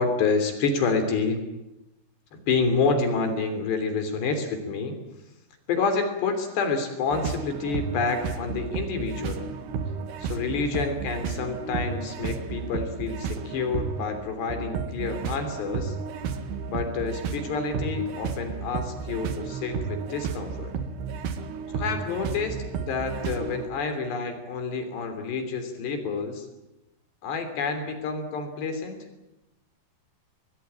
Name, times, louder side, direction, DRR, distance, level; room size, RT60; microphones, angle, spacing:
voice 1, 0.0-1.4 2.5-5.0 5.7-9.5 10.2-16.0 16.7-20.7 21.7-26.5 27.2-29.0, left 4 dB, 75° left, 7 dB, 5.3 m, -28 dB
sound 1, 7.1-23.7, right 5 dB, 70° right, 3.9 m, -33 dB
27.0 x 20.5 x 8.9 m, 0.93 s
omnidirectional pair, 5.0 m